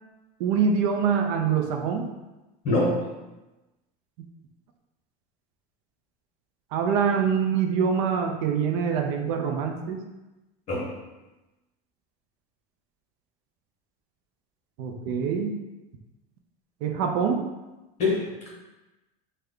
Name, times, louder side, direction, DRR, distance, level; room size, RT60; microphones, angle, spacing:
voice 1, 0.4-2.1 6.7-10.0 14.8-15.6 16.8-17.4, right 6 dB, 60° right, 4 dB, 0.4 m, -25 dB
voice 2, 2.6-3.0 10.7-10.9 18.0-18.5, left 2 dB, 35° left, -4 dB, 1.1 m, -24 dB
3.4 x 2.2 x 3.6 m, 1.0 s
cardioid pair, 160°, 20 cm